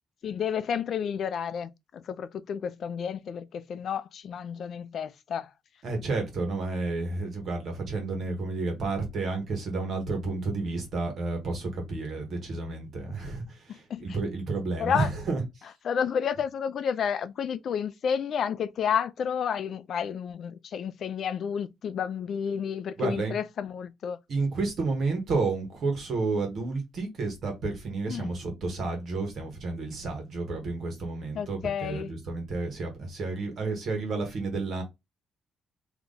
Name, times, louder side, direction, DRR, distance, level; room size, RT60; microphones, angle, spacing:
voice 1, 0.2-5.5 13.7-14.2 14.8-15.1 15.8-24.2 28.1-28.3 31.3-32.1, left 7 dB, 45° left, 0.5 m, -31 dB
voice 2, 5.8-15.4 23.0-23.4 24.3-34.8, right 3 dB, 45° right, 1.6 m, -31 dB
3.5 x 2.9 x 4.0 m
cardioid pair, 165°, 0 cm